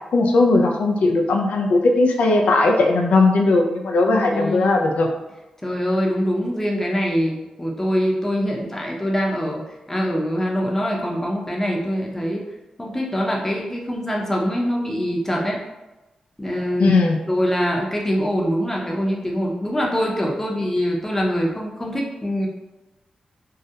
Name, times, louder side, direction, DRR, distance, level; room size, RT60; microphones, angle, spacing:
voice 1, 0.1-5.1 16.8-17.2, left 2 dB, 80° left, 2 dB, 0.4 m, -18 dB
voice 2, 4.1-4.8 5.6-12.5 12.8-15.6 16.4-17.0 17.3-22.5, equal, 15° left, -2 dB, 0.6 m, -24 dB
2.3 x 2.0 x 2.8 m, 1.0 s
cardioid pair, 55°, 2 cm